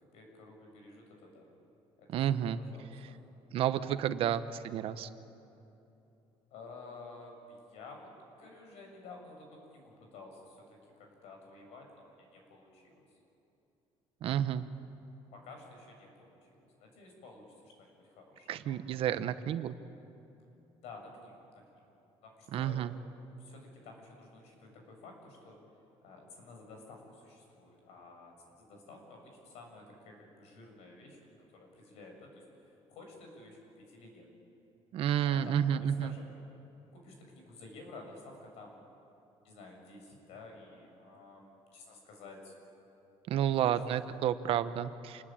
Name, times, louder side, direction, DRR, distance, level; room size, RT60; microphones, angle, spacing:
voice 1, 0.1-1.5 2.0-2.3 2.6-3.2 6.5-8.1 8.4-10.6 11.0-13.0 15.3-18.8 20.8-21.4 22.2-22.9 23.4-25.6 26.0-31.2 31.5-32.3 32.9-34.3 35.2-36.4 36.9-38.8 39.4-42.5 43.5-43.7, left 3 dB, 80° left, 2 dB, 7.1 m, -52 dB
voice 2, 2.1-2.6 3.5-5.1 14.2-14.6 18.5-19.7 22.5-22.9 34.9-36.1 43.3-45.2, right 10 dB, 60° right, 11 dB, 1.0 m, -30 dB
27.5 x 21.0 x 9.0 m, 2.9 s
cardioid pair, 150°, 11 cm